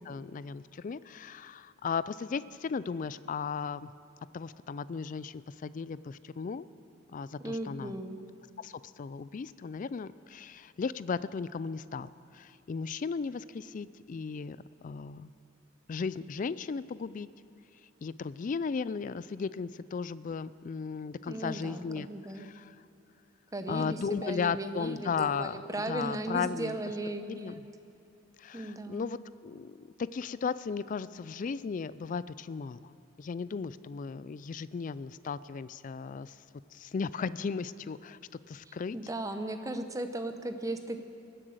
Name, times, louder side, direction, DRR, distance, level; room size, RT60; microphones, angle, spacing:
voice 1, 0.0-3.9 4.3-6.6 7.1-8.0 8.6-14.6 14.8-15.3 15.9-17.3 18.0-22.1 22.3-22.8 23.7-25.6 25.9-26.8 27.3-27.5 28.4-36.4 36.7-38.2 38.5-39.0, left 5 dB, 40° left, 17 dB, 0.3 m, -36 dB
voice 2, 7.4-8.2 21.3-22.5 23.5-27.6 28.5-29.2 38.7-41.0, right 1 dB, 15° right, 7 dB, 0.7 m, -37 dB
21.0 x 7.8 x 7.9 m, 2.6 s
head